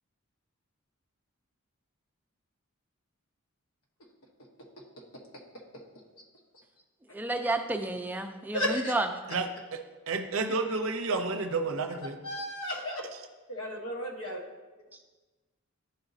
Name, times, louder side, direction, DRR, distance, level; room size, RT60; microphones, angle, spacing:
voice 1, 7.1-9.1, right 2 dB, 10° right, 5 dB, 0.3 m, -30 dB
voice 2, 8.5-8.9 12.2-13.0 13.5-14.4, equal, 85° left, 0 dB, 1.1 m, -33 dB
voice 3, 10.1-12.2, right 3 dB, 65° right, 6 dB, 0.5 m, -30 dB
10.5 x 4.0 x 2.7 m, 1.2 s
head